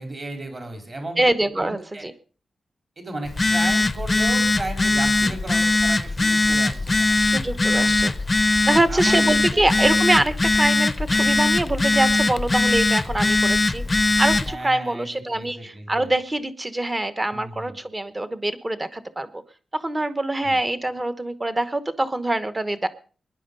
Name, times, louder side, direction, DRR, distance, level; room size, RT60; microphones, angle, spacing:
voice 1, 0.0-1.2 1.6-2.0 3.0-7.2 7.7-7.9 8.7-9.2 9.5-9.7 14.5-16.1 17.3-17.7 20.4-20.6, right 2 dB, 35° right, 4 dB, 4.3 m, -34 dB
voice 2, 1.2-2.1 5.2-5.3 7.2-8.1 8.6-19.4 19.7-22.9, right 1 dB, 20° right, 13 dB, 1.0 m, -24 dB
Telephone, 3.3-14.5, left 2 dB, 20° left, 0.6 m, -21 dB
21.0 x 10.5 x 5.4 m, 0.41 s
wide cardioid pair, 175°, 0 cm